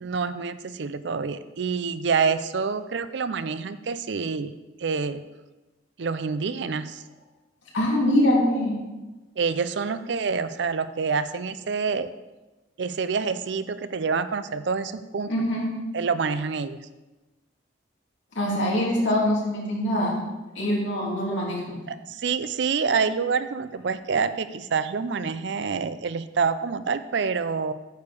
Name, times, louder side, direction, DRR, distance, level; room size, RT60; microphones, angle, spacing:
voice 1, 0.0-4.5 4.8-5.2 6.0-7.0 9.4-12.1 12.8-15.3 15.9-16.8 21.9-27.7, right 5 dB, 65° right, 12 dB, 0.5 m, -27 dB
voice 2, 7.7-8.7 15.3-15.7 18.3-20.2 20.5-21.8, left 1 dB, 75° left, -4 dB, 3.2 m, -23 dB
9.2 x 4.9 x 7.0 m, 1.1 s
head